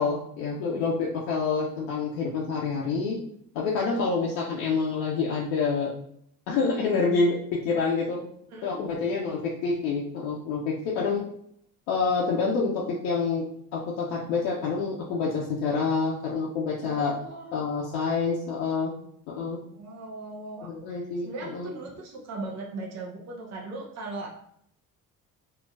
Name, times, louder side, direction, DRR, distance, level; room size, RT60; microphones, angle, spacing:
voice 1, 0.0-3.2 3.5-5.9 6.5-8.2 8.6-11.2 11.9-13.5 13.7-17.1 17.5-18.9 19.3-19.6 20.6-21.7, left 4 dB, 70° left, -4 dB, 0.7 m, -27 dB
voice 2, 3.7-4.1 8.5-8.8 16.8-17.5 17.8-17.9 19.7-21.0 21.2-24.3, right 2 dB, 40° right, -1 dB, 0.9 m, -39 dB
3.7 x 2.4 x 2.5 m, 0.70 s
hypercardioid pair, 50°, 41 cm